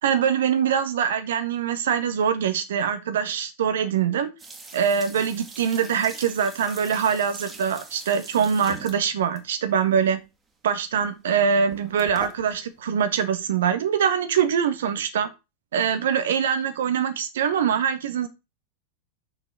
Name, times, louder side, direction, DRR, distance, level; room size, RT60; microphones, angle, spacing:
voice 1, 0.0-4.3 4.7-10.2 10.6-15.3 15.7-18.3, right 7 dB, 60° right, 1.6 m, -23 dB
sound 1, 4.4-9.5 9.9-10.2 10.9-11.1 11.4-12.8, right 3 dB, 15° right, 2.4 m, -42 dB
6.5 x 5.9 x 6.9 m
figure-of-eight pair, 90°, 0 cm